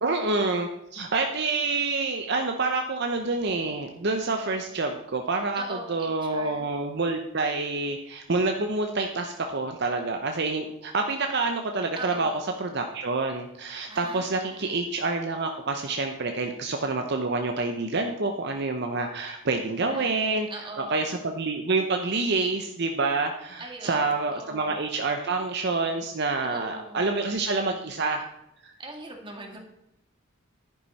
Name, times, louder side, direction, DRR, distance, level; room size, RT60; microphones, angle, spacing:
voice 1, 0.0-5.6 5.9-12.3 12.6-20.5 20.9-28.3 28.6-28.7, right 3 dB, 55° right, 4 dB, 0.8 m, -27 dB
voice 2, 5.6-6.7 11.9-12.5 13.9-14.9 19.8-21.1 23.6-24.8 26.4-27.1 28.8-29.6, right 2 dB, 25° right, 2 dB, 2.0 m, -41 dB
11.0 x 9.4 x 4.2 m, 0.84 s
head